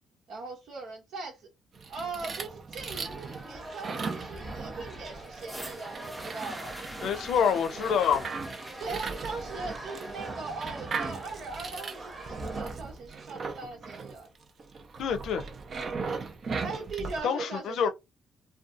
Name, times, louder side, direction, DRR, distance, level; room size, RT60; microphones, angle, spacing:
voice 1, 0.3-1.5 1.9-6.8 8.8-14.3 16.6-17.9, right 3 dB, 80° right, 1.1 m, -40 dB
sound 1, 1.7-17.2, right 4 dB, 45° right, 0.5 m, -38 dB
sound 2, 3.0-12.6, right 1 dB, 30° right, 0.9 m, -44 dB
sound 3, 5.4-13.4 14.2-14.3, equal, 10° right, 0.6 m, -46 dB
voice 2, 7.0-8.3 15.0-15.4 17.2-17.9, left 7 dB, 75° left, 0.5 m, -26 dB
2.6 x 2.2 x 2.5 m
cardioid pair, 90°, 0 cm